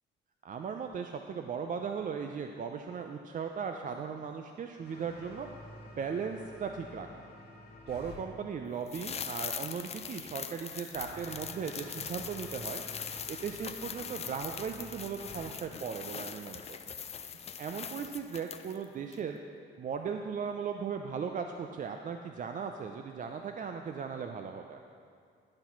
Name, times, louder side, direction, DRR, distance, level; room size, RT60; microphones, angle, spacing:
voice 1, 0.4-5.5 6.0-7.2 7.9-12.8 13.3-16.8 17.6-19.4 19.8-24.8, right 6 dB, 40° right, 5 dB, 0.4 m, -37 dB
sound 1, 4.8-8.2 10.9-15.5, left 1 dB, 55° left, 1.7 m, -50 dB
sound 2, 8.9-18.8 19.1-19.2, left 7 dB, 30° left, 0.4 m, -41 dB
11.5 x 4.2 x 5.8 m, 2.3 s
cardioid pair, 90°, 20 cm